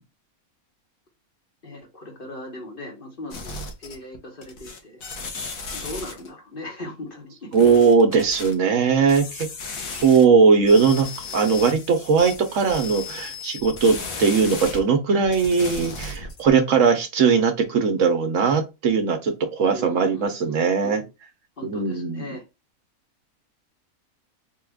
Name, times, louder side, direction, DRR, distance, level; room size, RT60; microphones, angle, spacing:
voice 1, 1.6-5.0 5.7-7.7 19.7-21.1 21.6-22.4, left 1 dB, 40° left, 1 dB, 1.3 m, -38 dB
sound 1, 3.3-4.2 4.4-6.3 7.5-8.5 9.1-10.2 10.6-14.8 15.2-16.5, left 4 dB, 75° left, 1.4 m, -35 dB
voice 2, 7.5-9.5 10.0-21.0 21.6-22.3, right 5 dB, 65° right, 6 dB, 1.1 m, -19 dB
3.8 x 2.4 x 3.4 m, 0.25 s
omnidirectional pair, 1.5 m